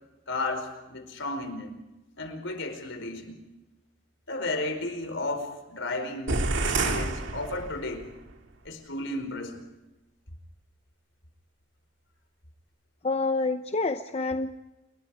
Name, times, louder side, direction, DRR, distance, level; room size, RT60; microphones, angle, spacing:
voice 1, 0.3-1.7 2.2-3.4 4.3-8.1 8.6-9.6, left 2 dB, 65° left, 6 dB, 4.9 m, -33 dB
sound 1, 6.3-8.1, right 3 dB, 60° right, 2.3 m, -28 dB
voice 2, 13.0-14.6, left 3 dB, 30° left, 7 dB, 0.7 m, -28 dB
28.5 x 22.5 x 5.0 m, 1.0 s
head